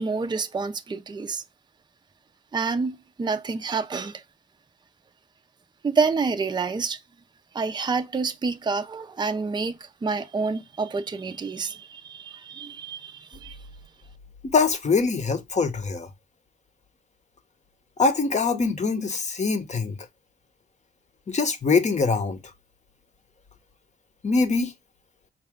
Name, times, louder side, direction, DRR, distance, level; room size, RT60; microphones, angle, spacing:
voice 1, 0.0-1.4 2.5-4.2 5.8-7.0 7.5-13.6, right 4 dB, 20° right, 0.5 m, -28 dB
voice 2, 14.4-16.1 18.0-20.0 21.3-22.4 24.2-24.7, left 4 dB, 35° left, 0.9 m, -23 dB
4.8 x 2.3 x 3.5 m
cardioid pair, 70°, 20 cm